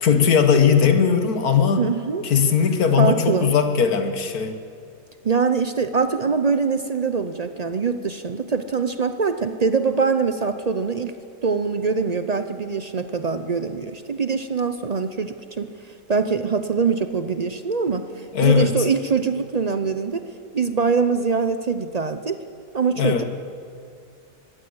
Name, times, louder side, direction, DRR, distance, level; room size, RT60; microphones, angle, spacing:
voice 1, 0.0-1.8 2.2-4.6 18.3-18.7 23.0-23.2, left 7 dB, 65° left, 7 dB, 1.8 m, -18 dB
voice 2, 1.8-2.2 3.0-3.6 5.2-11.1 11.4-15.7 16.1-20.2 20.5-22.4 22.7-23.2, right 5 dB, 65° right, 9 dB, 0.4 m, -23 dB
21.0 x 16.0 x 7.9 m, 2.4 s
omnidirectional pair, 1.7 m